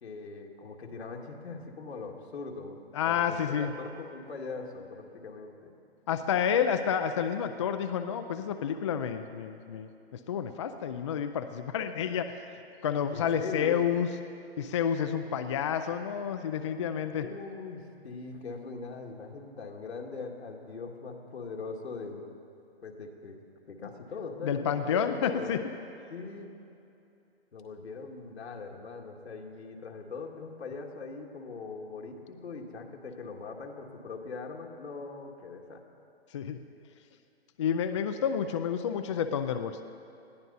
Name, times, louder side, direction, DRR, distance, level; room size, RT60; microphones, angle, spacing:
voice 1, 0.0-2.8 3.1-5.7 13.1-13.8 17.2-22.2 22.8-23.4 23.7-25.5 26.1-26.5 27.5-35.8, left 4 dB, 80° left, 1 dB, 2.2 m, -41 dB
voice 2, 2.9-3.7 6.1-12.5 12.8-14.1 14.6-17.3 24.4-25.6 36.3-36.6 37.6-39.8, left 8 dB, 30° left, 8 dB, 0.4 m, -30 dB
20.0 x 14.5 x 4.1 m, 2.7 s
hypercardioid pair, 155°, 32 cm